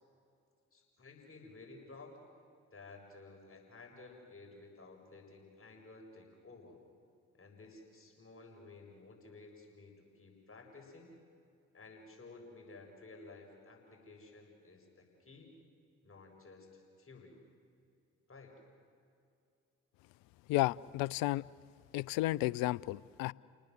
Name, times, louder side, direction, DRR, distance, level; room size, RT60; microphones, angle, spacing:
voice 1, 0.7-2.2 2.7-6.8 7.4-11.2 11.7-15.5 16.0-17.4 18.3-18.6, left 3 dB, 40° left, 1 dB, 7.0 m, -54 dB
voice 2, 20.5-21.4 21.9-23.3, left 17 dB, 70° left, 23 dB, 0.5 m, -32 dB
30.0 x 19.5 x 7.8 m, 2.5 s
hypercardioid pair, 40°, 35 cm